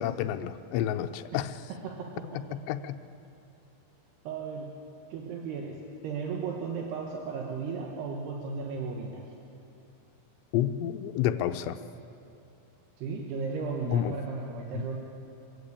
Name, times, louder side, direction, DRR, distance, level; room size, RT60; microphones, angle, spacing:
voice 1, 0.0-1.6 2.3-3.0 10.5-11.8 13.9-14.2 14.7-14.8, left 11 dB, 90° left, 7 dB, 2.9 m, -30 dB
voice 2, 1.8-2.6 4.3-4.7 5.1-5.8 6.0-9.2 13.0-15.0, right 5 dB, 75° right, 1 dB, 3.3 m, -35 dB
24.0 x 15.5 x 8.6 m, 2.7 s
omnidirectional pair, 5.0 m